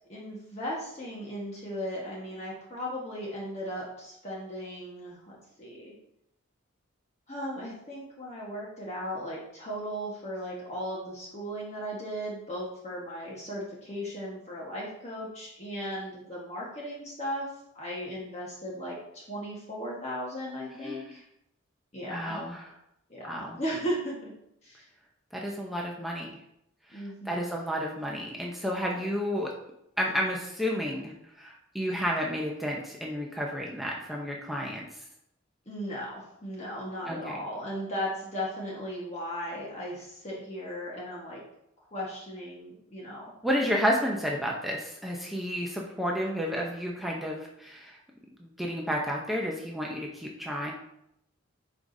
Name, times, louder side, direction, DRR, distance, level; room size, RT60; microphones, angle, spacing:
voice 1, 0.1-5.9 7.3-17.5 17.7-21.2 21.9-22.5 23.1-24.3 24.6-24.9 26.9-27.6 28.9-29.0 35.6-41.4 41.9-43.3, equal, 30° left, -5 dB, 1.4 m, -36 dB
voice 2, 20.7-21.1 22.1-22.7 23.3-23.6 25.3-26.3 26.9-29.5 30.0-34.9 37.1-37.4 43.4-48.0 48.4-50.7, equal, ahead, -2 dB, 0.7 m, -31 dB
9.0 x 4.8 x 2.7 m, 0.78 s
head